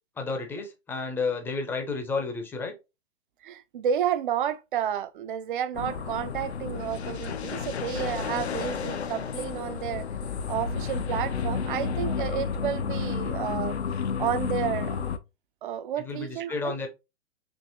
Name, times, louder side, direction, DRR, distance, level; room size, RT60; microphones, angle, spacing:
voice 1, 0.2-2.7 16.0-16.9, left 4 dB, 5° left, 0.6 m, -31 dB
voice 2, 3.4-10.1 10.5-13.8 14.2-15.0 15.6-16.8, right 9 dB, 50° right, 0.5 m, -31 dB
sound 1, 5.7-15.2, left 6 dB, 70° left, 0.6 m, -31 dB
4.5 x 2.8 x 2.7 m
figure-of-eight pair, 110°, 34 cm